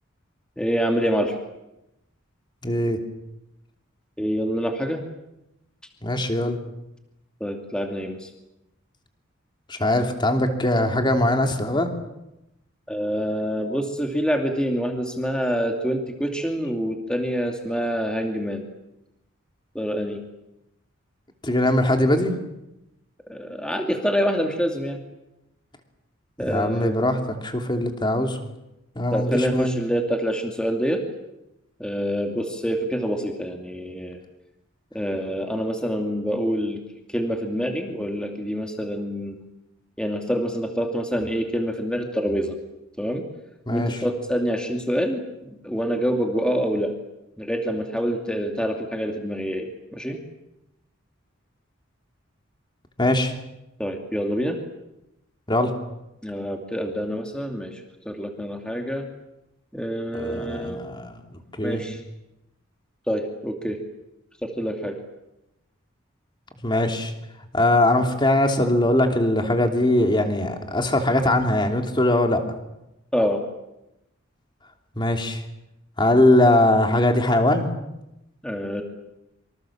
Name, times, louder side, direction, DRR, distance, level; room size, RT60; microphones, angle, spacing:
voice 1, 0.6-1.3 4.2-5.0 7.4-8.3 12.9-18.7 19.7-20.2 23.2-25.0 26.4-27.0 29.1-31.0 31.8-34.2 34.9-36.8 37.1-39.4 40.0-42.5 43.0-43.2 43.7-45.2 45.6-46.9 47.4-50.2 53.8-54.6 56.2-59.1 59.7-60.8 61.6-62.0 63.1-63.8 64.4-65.0 73.1-73.4 78.4-78.8, equal, 5° left, 3 dB, 2.6 m, -26 dB
voice 2, 2.6-3.0 6.0-6.6 9.7-11.9 21.4-22.4 26.5-28.4 28.9-29.8 43.7-44.0 53.0-53.3 55.5-55.7 60.1-61.2 61.6-61.8 66.6-67.1 67.5-72.4 75.0-75.4 76.0-77.7, left 1 dB, 20° left, 4 dB, 3.0 m, -21 dB
26.5 x 25.0 x 7.4 m, 0.89 s
head